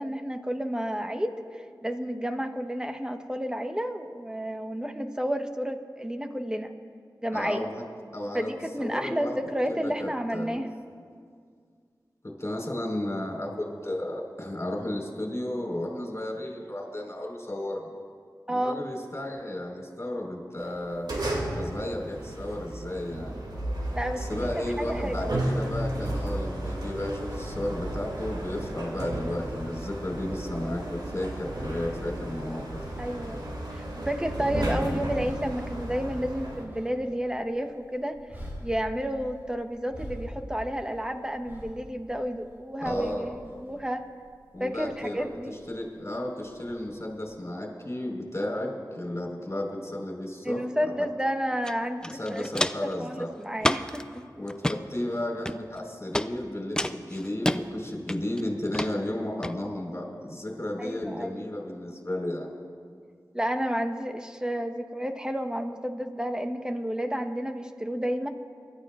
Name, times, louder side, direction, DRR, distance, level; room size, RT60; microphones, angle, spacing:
voice 1, 0.0-1.4 1.8-6.7 7.2-7.7 8.3-10.7 18.5-18.8 23.9-24.5 24.8-25.4 33.0-33.4 33.7-38.2 38.6-44.0 44.6-45.5 50.4-54.3 60.8-61.5 63.3-68.3, equal, 10° right, 5 dB, 1.1 m, -31 dB
voice 2, 7.3-7.8 8.1-8.5 8.8-9.4 9.7-10.6 12.2-17.9 18.5-21.1 21.6-23.3 24.2-32.6 42.8-43.3 44.5-50.6 52.1-53.3 54.4-62.5, left 1 dB, 35° left, 0 dB, 4.3 m, -33 dB
sound 1, 20.6-36.6, right 1 dB, 70° right, 2.4 m, -33 dB
sound 2, 35.2-47.4, equal, 30° right, 3.5 m, -47 dB
Walk footsteps, 51.6-51.7 52.0-52.9 53.6-54.0 54.5-54.8 55.4-55.8 56.1-56.3 56.8-57.6 58.1-58.4 58.7-58.9 59.4-59.5, left 1 dB, 10° left, 0.5 m, -28 dB
25.0 x 12.5 x 2.5 m, 2.1 s
cardioid pair, 40°, 8 cm